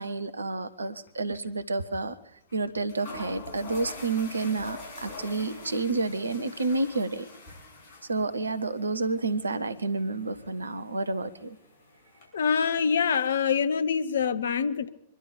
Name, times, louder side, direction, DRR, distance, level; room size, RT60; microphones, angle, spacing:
voice 1, 0.0-2.2 2.5-7.3 8.1-11.6, right 3 dB, 75° right, 1.0 m, -30 dB
sound 1, 0.8-1.1 1.3-1.4 2.5-2.6 2.9-12.3, left 3 dB, 45° left, 6.3 m, -45 dB
voice 2, 12.3-14.9, left 6 dB, 65° left, 0.9 m, -25 dB
25.0 x 11.5 x 5.1 m
figure-of-eight pair, 100°, 0 cm